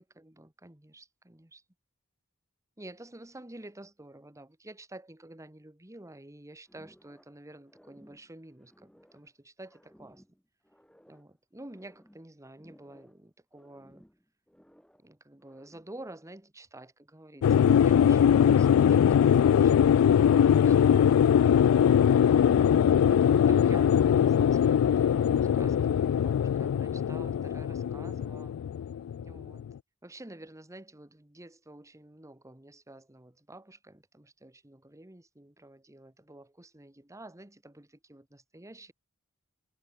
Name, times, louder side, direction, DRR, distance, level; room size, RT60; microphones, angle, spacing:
voice 1, 0.0-1.6 2.8-10.2 11.1-14.0 15.0-21.7 22.5-28.5 29.2-29.7 30.0-38.9, right 1 dB, 15° right, 1.5 m, -50 dB
sound 1, 6.7-7.4 7.6-9.3 9.6-11.3 11.6-13.3 13.5-15.1 15.4-16.0, equal, 5° left, 7.9 m, -60 dB
sound 2, 17.4-29.7, left 8 dB, 80° left, 0.3 m, -22 dB
head